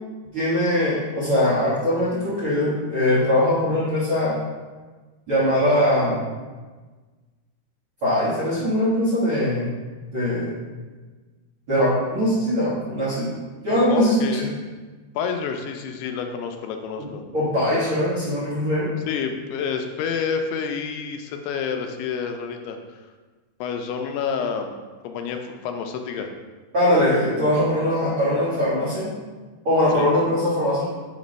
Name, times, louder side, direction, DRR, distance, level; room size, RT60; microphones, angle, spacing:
voice 1, 0.3-4.4 5.3-6.2 8.0-9.6 10.1-10.6 11.7-13.3 13.6-14.1 17.0-17.1 17.3-18.9 26.7-29.1 29.6-30.8, left 1 dB, 50° right, -11 dB, 1.5 m, -21 dB
voice 2, 13.9-14.5 15.2-17.2 19.1-22.8 23.6-24.8 25.0-26.3 29.9-30.1, left 6 dB, 85° left, 5 dB, 2.6 m, -28 dB
6.7 x 3.1 x 5.1 m, 1.3 s
omnidirectional pair, 4.7 m